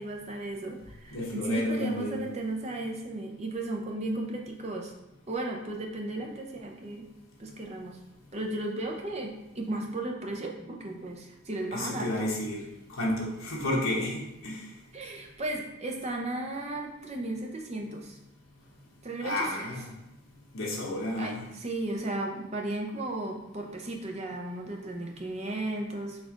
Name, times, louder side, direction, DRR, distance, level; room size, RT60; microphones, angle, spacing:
voice 1, 0.0-4.9 5.3-7.1 7.4-8.0 8.3-12.3 14.9-18.2 19.0-19.7 21.2-26.2, right 2 dB, 30° right, 1 dB, 0.6 m, -35 dB
voice 2, 1.1-2.2 11.7-12.6 13.0-14.6 19.2-19.8 20.5-21.4, left 1 dB, 75° left, -3 dB, 1.1 m, -31 dB
4.3 x 2.5 x 4.5 m, 0.92 s
head